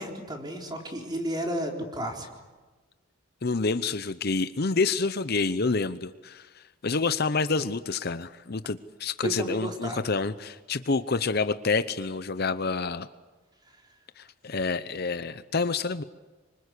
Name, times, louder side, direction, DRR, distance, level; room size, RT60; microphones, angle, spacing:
voice 1, 0.0-2.3 9.2-10.1, equal, 20° right, 2 dB, 3.9 m, -32 dB
voice 2, 3.4-6.5 6.8-13.1 14.2-16.0, left 4 dB, 50° left, 12 dB, 0.8 m, -28 dB
27.0 x 25.0 x 8.4 m, 1.3 s
head